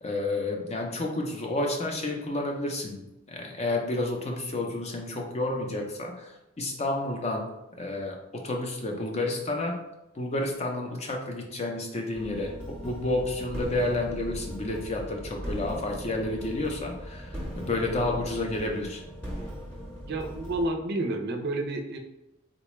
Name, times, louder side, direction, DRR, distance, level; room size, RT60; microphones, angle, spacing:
voice 1, 0.0-7.5 7.8-9.8 10.2-19.0, left 2 dB, 30° left, 1 dB, 0.5 m, -30 dB
sound 1, 12.1-20.7, equal, 10° left, 0.8 m, -39 dB
voice 2, 20.0-22.0, right 2 dB, 50° right, 4 dB, 0.4 m, -30 dB
3.9 x 2.2 x 3.0 m, 0.93 s
head